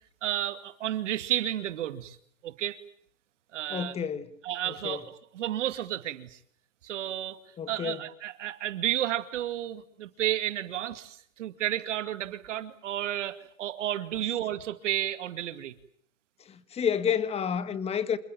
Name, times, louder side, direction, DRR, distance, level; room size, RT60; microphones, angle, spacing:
voice 1, 0.2-2.2 2.4-2.8 3.5-3.9 4.4-6.4 6.8-15.7, right 12 dB, 65° right, 2.4 m, -32 dB
voice 2, 3.7-4.4 4.6-5.0 7.6-8.0 16.4-18.2, left 7 dB, 15° left, 1.6 m, -30 dB
28.0 x 21.5 x 9.0 m
hypercardioid pair, 135°, 40 cm